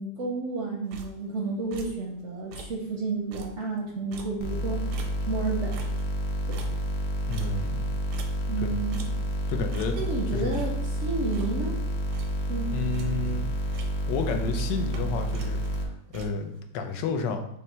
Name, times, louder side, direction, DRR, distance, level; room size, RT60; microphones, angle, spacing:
voice 1, 0.0-4.8 5.3-5.8 6.5-6.8 8.5-9.0 9.9-10.8 11.0-11.8 12.5-12.7, right 3 dB, 60° right, -1 dB, 0.7 m, -31 dB
sound 1, 0.9-1.4 1.7-2.1 2.4-2.9 3.2-5.5 5.7-8.6 8.9-9.4 9.7-10.2 10.5-11.8 12.1-12.5 12.8-13.4 13.7-14.3 14.5-16.6, right 3 dB, 80° right, 1.2 m, -43 dB
sound 2, 4.4-15.9, equal, 60° left, 1.0 m, -29 dB
voice 2, 7.3-7.9 8.6-8.7 9.5-10.0 10.3-10.6 12.7-13.5 14.1-17.5, left 4 dB, 90° left, 5 dB, 1.3 m, -31 dB
5.4 x 2.1 x 4.4 m, 0.77 s
omnidirectional pair, 1.9 m